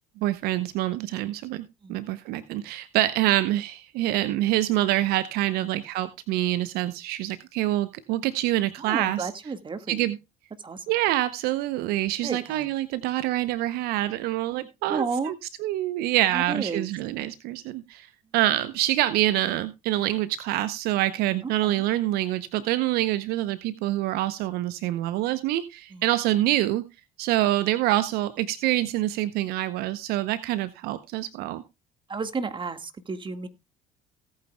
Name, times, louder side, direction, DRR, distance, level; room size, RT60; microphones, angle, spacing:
voice 1, 0.2-1.6 1.9-9.3 9.9-10.2 10.9-15.0 15.6-26.9 27.2-31.6, right 15 dB, 65° right, 15 dB, 0.7 m, -26 dB
voice 2, 8.8-10.1 10.6-10.9 12.2-12.7 14.5-15.3 16.3-16.9 21.4-21.8 25.9-26.1 32.1-33.5, right 4 dB, 30° right, 9 dB, 1.7 m, -33 dB
17.5 x 8.9 x 2.3 m, 0.25 s
hypercardioid pair, 60°, 17 cm